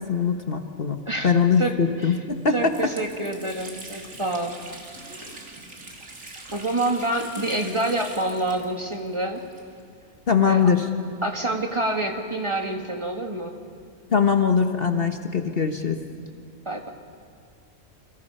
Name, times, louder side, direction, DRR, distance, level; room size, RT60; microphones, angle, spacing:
voice 1, 0.0-2.7 10.3-10.9 14.1-16.0, left 6 dB, 45° left, 5 dB, 1.3 m, -21 dB
Water tap faucet, 1.8-1.9 2.3-10.0 10.3-10.4 11.2-12.8, right 2 dB, 70° right, 3.1 m, -43 dB
voice 2, 2.5-4.6 5.0-5.2 6.5-9.4 10.5-10.7 11.2-13.5 16.7-16.9, right 2 dB, 20° right, 3 dB, 1.8 m, -27 dB
29.0 x 26.0 x 5.6 m, 2.3 s
omnidirectional pair, 1.4 m